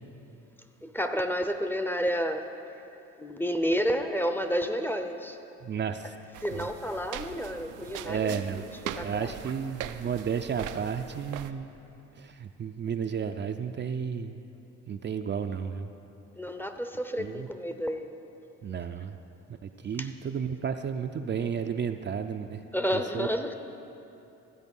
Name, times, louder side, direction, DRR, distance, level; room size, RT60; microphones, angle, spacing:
voice 1, 0.8-2.5 3.2-5.4 6.4-8.4 8.8-9.3 16.4-18.1 20.0-20.1 22.7-23.5, equal, 5° left, 7 dB, 0.6 m, -30 dB
voice 2, 5.6-6.1 6.5-6.6 8.0-8.7 9.0-11.7 12.2-14.4 14.9-15.9 17.2-17.5 18.6-19.2 19.6-22.6 22.9-23.3, right 7 dB, 35° right, 6 dB, 0.4 m, -32 dB
sound 1, 6.3-11.5, right 10 dB, 85° right, 0.5 m, -41 dB
13.0 x 7.9 x 5.4 m, 2.8 s
cardioid pair, 90°, 30 cm